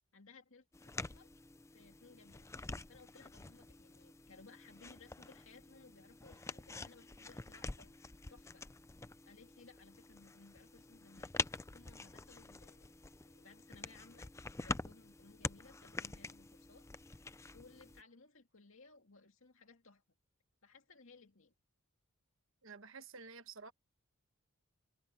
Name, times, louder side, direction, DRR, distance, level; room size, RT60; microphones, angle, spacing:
voice 1, 0.1-1.3 1.7-8.7 9.2-11.3 11.7-12.9 13.2-14.3 14.6-17.1 17.5-20.0 20.6-21.5, left 4 dB, 60° left, 2.4 m, -61 dB
sound 1, 0.7-18.0, left 3 dB, 15° left, 0.4 m, -46 dB
voice 2, 22.6-23.7, right 5 dB, 60° right, 1.2 m, -51 dB
head